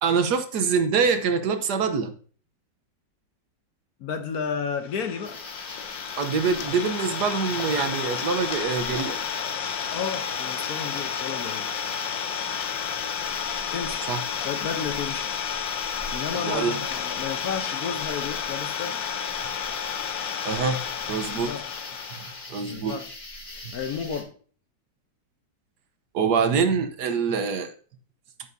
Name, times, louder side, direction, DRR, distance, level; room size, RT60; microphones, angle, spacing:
voice 1, 0.0-2.1 6.2-9.2 14.1-14.2 16.3-16.8 20.4-20.8 21.1-21.5 22.1-22.9 23.6-23.7 26.1-27.7, right 5 dB, 65° right, 1.4 m, -25 dB
voice 2, 4.0-5.4 9.8-11.7 13.7-14.1 14.4-15.3 16.1-19.0 21.2-21.8 22.7-23.1 23.5-24.3, left 6 dB, 60° left, 1.2 m, -32 dB
Idling, 4.9-22.6, left 8 dB, 80° left, 1.5 m, -31 dB
sound 1, 5.2-24.2, left 2 dB, 40° left, 2.5 m, -42 dB
10.5 x 8.9 x 2.7 m
omnidirectional pair, 2.0 m